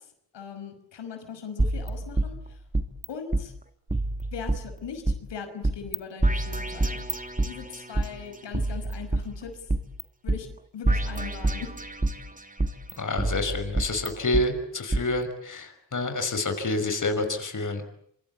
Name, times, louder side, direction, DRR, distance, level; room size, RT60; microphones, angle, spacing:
voice 1, 0.3-2.6 3.1-3.5 4.3-7.0 7.5-9.5 10.2-10.5 10.7-11.7, left 6 dB, 85° left, 6 dB, 5.7 m, -39 dB
sound 1, 1.6-3.1 3.3-3.4 3.9-5.2 5.6-6.0 6.2-8.1 8.5-10.0 10.3-10.4 10.9-12.2 12.6-14.4 14.9-15.0, right 2 dB, 20° right, 2.7 m, -27 dB
voice 2, 13.0-17.8, left 2 dB, 45° left, 7 dB, 5.9 m, -28 dB
26.5 x 24.0 x 8.5 m, 0.68 s
cardioid pair, 75°, 42 cm